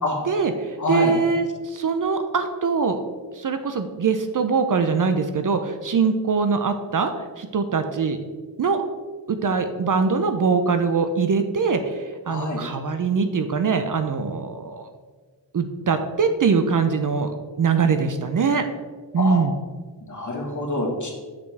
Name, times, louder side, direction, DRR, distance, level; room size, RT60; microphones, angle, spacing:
voice 1, 0.3-3.0 3.3-8.2 8.6-8.8 9.3-14.9 15.5-18.6 19.1-19.5, right 5 dB, 45° right, 8 dB, 0.5 m, -22 dB
voice 2, 0.8-1.1 12.3-12.6 19.2-19.4 20.1-21.1, left 2 dB, 40° left, -1 dB, 1.5 m, -26 dB
6.9 x 5.4 x 3.3 m, 1.4 s
wide cardioid pair, 100°, 44 cm